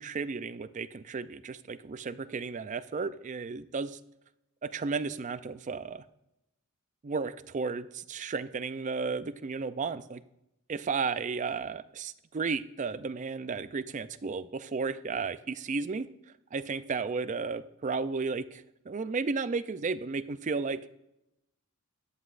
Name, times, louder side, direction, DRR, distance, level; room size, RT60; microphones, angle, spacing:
voice 1, 0.0-4.0 4.6-6.0 7.0-10.2 10.7-16.1 16.5-20.9, right 4 dB, 35° right, 14 dB, 0.4 m, -33 dB
13.5 x 9.7 x 2.5 m, 0.85 s
head